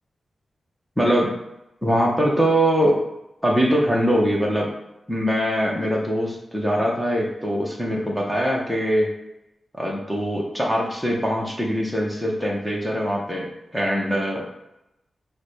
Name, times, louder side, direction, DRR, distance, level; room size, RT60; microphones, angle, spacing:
voice 1, 1.0-1.3 1.8-3.0 3.4-4.7 5.1-9.1 9.8-13.5 13.7-14.4, equal, ahead, -2 dB, 0.7 m, -22 dB
4.7 x 2.1 x 4.7 m, 0.90 s
wide cardioid pair, 170°, 0 cm